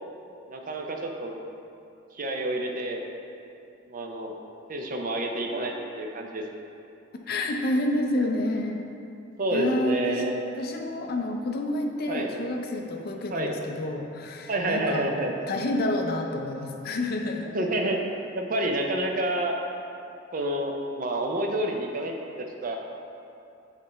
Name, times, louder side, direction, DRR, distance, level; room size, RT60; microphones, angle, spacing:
voice 1, 0.5-1.4 2.1-3.0 3.9-4.3 4.7-6.4 9.4-10.4 12.1-12.3 13.3-13.5 14.5-15.4 17.5-18.1 18.3-19.5 20.3-22.8, right 1 dB, 45° right, 2 dB, 0.6 m, -28 dB
voice 2, 7.3-8.8 9.5-10.2 10.6-15.1 15.5-17.5, left 1 dB, 50° left, 3 dB, 0.5 m, -29 dB
7.4 x 3.2 x 4.2 m, 2.7 s
head